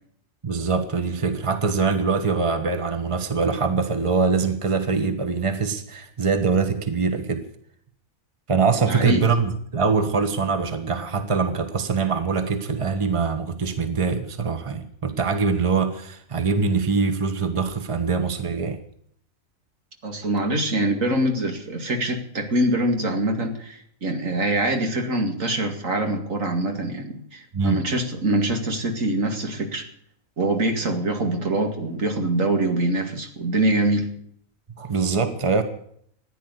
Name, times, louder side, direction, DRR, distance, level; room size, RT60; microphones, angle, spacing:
voice 1, 0.4-7.4 8.5-18.8 27.5-27.8 34.8-35.6, right 5 dB, 25° right, 8 dB, 1.4 m, -23 dB
voice 2, 8.9-9.3 20.0-29.9 30.4-34.1, right 1 dB, 70° right, 5 dB, 2.6 m, -24 dB
15.0 x 10.5 x 8.1 m, 0.66 s
omnidirectional pair, 1.4 m